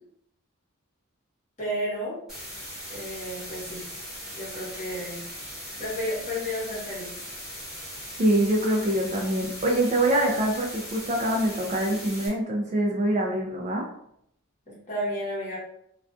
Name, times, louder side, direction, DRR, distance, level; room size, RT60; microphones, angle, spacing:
voice 1, 1.6-2.2 2.9-3.9 4.3-5.2 5.8-7.2 14.7-15.6, equal, 35° left, -7 dB, 1.0 m, -32 dB
sound 1, 2.3-12.3, equal, ahead, 0.9 m, -39 dB
voice 2, 8.2-13.9, right 1 dB, 30° right, 0 dB, 0.3 m, -24 dB
2.4 x 2.3 x 2.3 m, 0.73 s
head